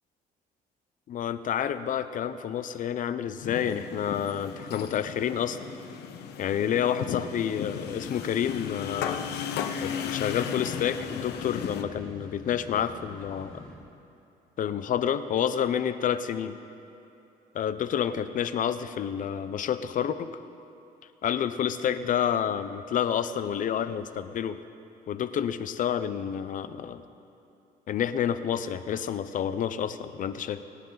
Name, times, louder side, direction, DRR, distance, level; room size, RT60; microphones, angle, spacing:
voice 1, 1.1-5.7 6.4-9.3 9.8-13.6 14.6-16.5 17.5-20.3 21.2-24.6 25.1-27.0 27.9-30.6, left 9 dB, 50° left, 12 dB, 0.7 m, -29 dB
sound 1, 3.4-11.8, left 8 dB, 75° left, 1.1 m, -35 dB
sound 2, 7.6-13.8, left 1 dB, 5° left, 3.0 m, -48 dB
26.5 x 10.0 x 4.0 m, 2.8 s
cardioid pair, 110°, 17 cm